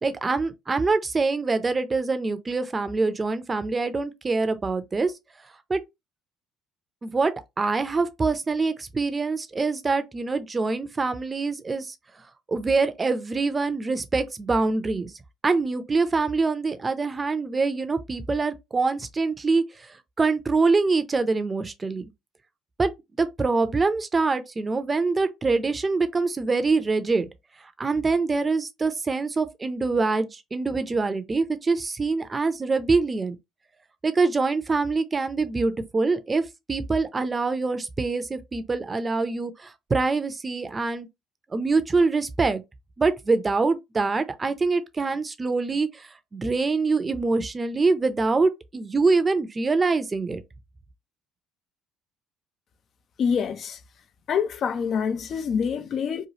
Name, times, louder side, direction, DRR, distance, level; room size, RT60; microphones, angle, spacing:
voice 1, 0.0-5.1 5.7-5.8 7.0-11.9 12.5-15.1 15.4-19.6 20.2-22.0 22.8-22.9 23.2-27.3 27.8-33.4 34.0-36.4 36.7-41.1 41.5-42.6 43.0-45.9 46.3-50.4, right 3 dB, 30° right, 0.5 m, -24 dB
voice 2, 53.2-53.8 54.3-56.3, left 6 dB, 55° left, 0.4 m, -26 dB
3.0 x 2.3 x 2.8 m
hypercardioid pair, 65°, 0 cm